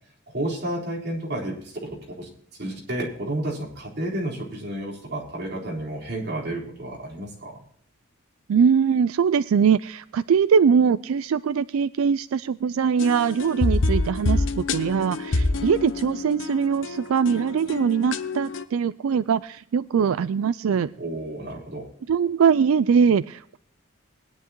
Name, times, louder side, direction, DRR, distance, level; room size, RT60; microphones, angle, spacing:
voice 1, 0.3-2.3 2.6-7.6 21.0-21.9, right 1 dB, 50° right, -3 dB, 4.1 m, -31 dB
voice 2, 8.5-20.9 22.1-23.6, right 6 dB, 90° right, 16 dB, 0.4 m, -22 dB
sound 1, 13.0-18.6, left 2 dB, 65° left, 0.9 m, -27 dB
20.0 x 10.5 x 2.9 m, 0.63 s
head